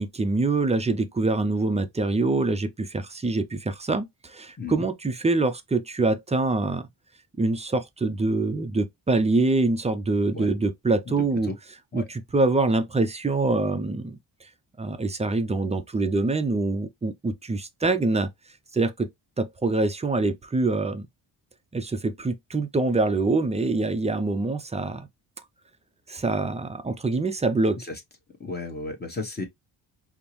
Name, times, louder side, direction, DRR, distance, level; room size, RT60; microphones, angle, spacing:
voice 1, 0.0-6.9 7.4-11.5 11.9-14.2 14.8-18.3 18.7-19.1 19.4-21.1 21.7-25.1 26.1-27.8, right 3 dB, 15° right, 0.4 m, -25 dB
voice 2, 11.1-11.6 11.9-12.1 27.8-28.0 28.4-29.5, left 3 dB, 20° left, 0.9 m, -34 dB
5.2 x 2.0 x 3.0 m
cardioid pair, 125°, 43 cm